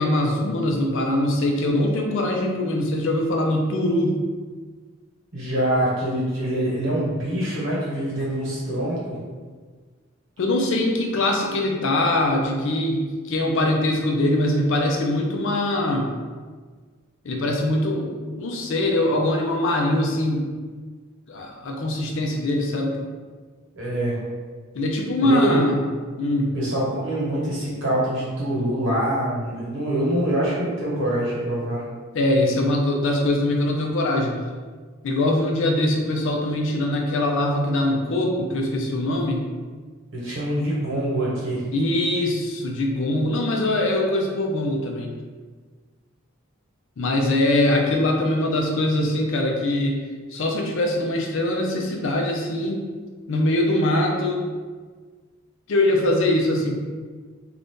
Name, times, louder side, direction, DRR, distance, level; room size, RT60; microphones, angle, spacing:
voice 1, 0.0-4.2 10.4-16.1 17.2-20.5 21.3-23.1 24.7-25.8 26.2-26.5 32.1-34.3 35.0-39.4 41.7-45.1 47.0-50.0 50.3-52.9 53.3-54.5 55.7-56.7, left 1 dB, 65° left, 1 dB, 0.5 m, -22 dB
voice 2, 5.3-9.2 23.7-24.2 25.2-25.7 26.5-31.8 40.1-41.6, right 1 dB, 65° right, -6 dB, 1.2 m, -25 dB
2.6 x 2.4 x 3.5 m, 1.5 s
head